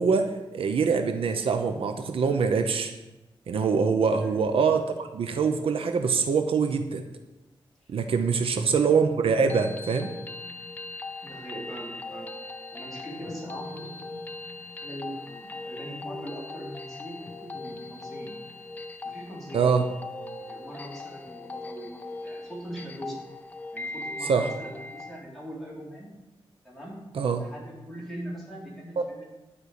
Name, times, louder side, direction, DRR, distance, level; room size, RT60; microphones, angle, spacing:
voice 1, 0.0-2.9 3.5-7.0 7.9-10.1 19.5-19.8 24.3-24.5 27.1-27.4, right 5 dB, 75° right, 6 dB, 0.9 m, -24 dB
sound 1, 9.3-25.2, left 2 dB, 20° left, 0.6 m, -39 dB
voice 2, 11.2-12.4 12.7-14.2 14.7-18.3 19.0-19.7 20.2-23.2 23.7-26.1 26.6-27.1 27.4-29.2, equal, ahead, -6 dB, 4.0 m, -41 dB
11.0 x 5.5 x 8.3 m, 1.0 s
wide cardioid pair, 170°, 10 cm